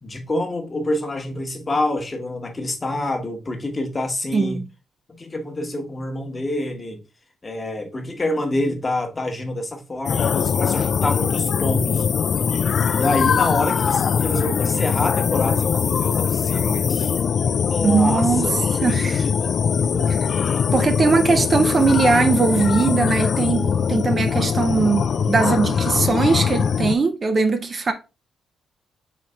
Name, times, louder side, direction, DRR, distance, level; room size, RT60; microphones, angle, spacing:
voice 1, 0.0-4.6 5.1-7.0 7.4-12.1 12.9-17.3 17.7-18.5 18.8-20.1, left 2 dB, 25° left, 1.0 m, -27 dB
voice 2, 4.3-4.7 17.8-18.5 18.8-19.3 20.7-27.9, right 4 dB, 40° right, 0.6 m, -20 dB
sound 1, 10.1-27.0, left 6 dB, 60° left, 0.3 m, -21 dB
4.0 x 3.1 x 3.2 m
cardioid pair, 80°, 0 cm